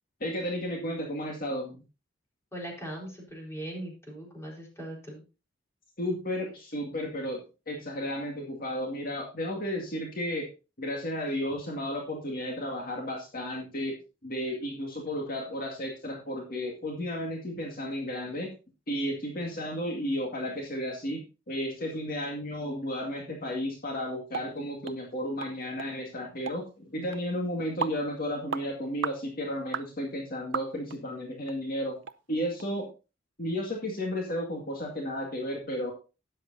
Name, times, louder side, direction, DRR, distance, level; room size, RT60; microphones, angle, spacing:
voice 1, 0.2-1.8 6.0-7.4 7.7-10.5 10.8-13.9 14.2-18.5 18.9-32.0 32.3-32.9 33.4-35.9, equal, 45° left, 0 dB, 2.2 m, -33 dB
voice 2, 2.5-5.2 11.3-11.4, right 1 dB, 15° left, -2 dB, 4.3 m, -40 dB
sound 1, 24.3-24.5 24.8-25.0 25.4-25.5 25.8-25.9 26.5-26.6 27.1-27.2 27.8-28.0 28.5-28.7 29.0-29.2 29.7-29.9 30.5-31.0 31.5-31.6 32.0-32.2 32.6-32.7, right 5 dB, 65° right, 0.6 m, -34 dB
13.0 x 10.0 x 2.8 m, 0.31 s
head